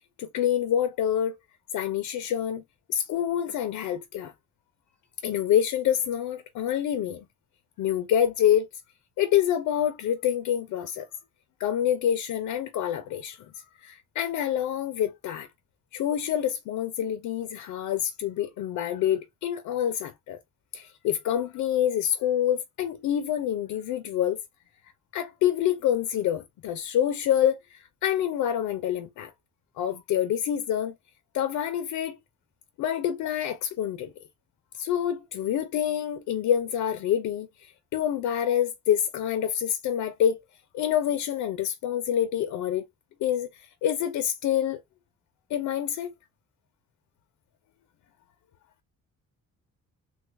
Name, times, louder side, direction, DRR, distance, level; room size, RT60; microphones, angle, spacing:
voice 1, 0.2-1.4 1.7-2.6 2.9-4.3 5.2-7.3 7.8-8.7 9.2-11.1 11.6-15.5 15.9-20.4 20.7-24.4 25.1-29.3 29.8-30.9 31.3-32.2 32.8-34.1 34.8-40.4 40.7-42.9 43.2-44.8 45.5-46.1, left 10 dB, 85° left, 0.6 m, -27 dB
3.2 x 2.3 x 3.2 m
cardioid pair, 90°, 30 cm